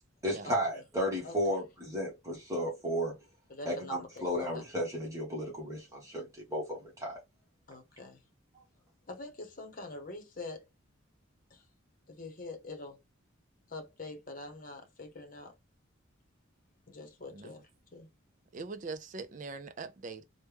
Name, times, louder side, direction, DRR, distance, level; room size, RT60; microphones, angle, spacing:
voice 1, 0.2-3.1 3.6-7.2, equal, 15° right, 1.1 m, -34 dB
voice 2, 3.5-4.1 4.3-4.6 7.7-8.2 9.1-10.7 11.5-11.6 12.1-13.0 13.7-15.5 16.9-18.1, left 2 dB, 45° left, 0.9 m, -44 dB
voice 3, 18.5-20.2, right 4 dB, 40° right, 0.4 m, -42 dB
3.2 x 2.2 x 3.3 m
head